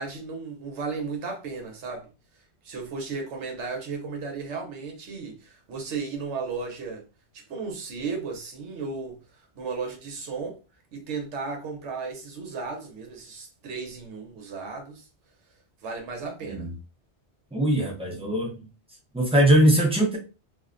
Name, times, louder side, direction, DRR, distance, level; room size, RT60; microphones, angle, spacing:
voice 1, 0.0-2.1 2.6-7.0 7.3-9.2 9.6-10.6 10.9-15.1 15.8-16.7, right 4 dB, 85° right, 1.0 m, -34 dB
voice 2, 17.5-18.6 19.1-20.2, right 1 dB, 10° right, 0.3 m, -21 dB
2.4 x 2.1 x 2.4 m
omnidirectional pair, 1.2 m